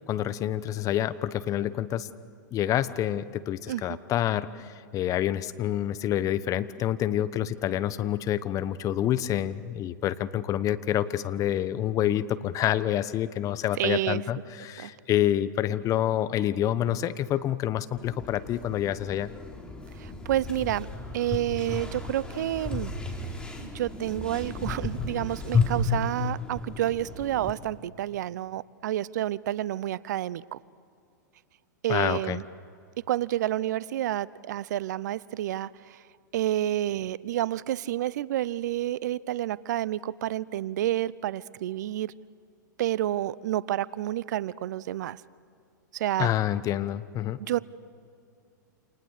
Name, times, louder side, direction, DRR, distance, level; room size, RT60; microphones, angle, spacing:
voice 1, 0.1-2.1 2.5-19.3 31.9-32.4 46.2-47.4, left 12 dB, 35° left, 14 dB, 1.2 m, -27 dB
voice 2, 3.7-4.0 13.8-14.2 14.8-14.9 20.0-20.9 21.1-22.9 23.6-30.6 31.8-32.4 33.1-36.0 36.3-42.1 42.8-45.2 45.9-46.3 47.4-47.6, right 13 dB, 65° right, 20 dB, 0.7 m, -29 dB
sound 1, 18.0-27.5, left 4 dB, 10° left, 4.1 m, -33 dB
29.0 x 28.5 x 6.7 m, 2.4 s
hypercardioid pair, 110°, 10 cm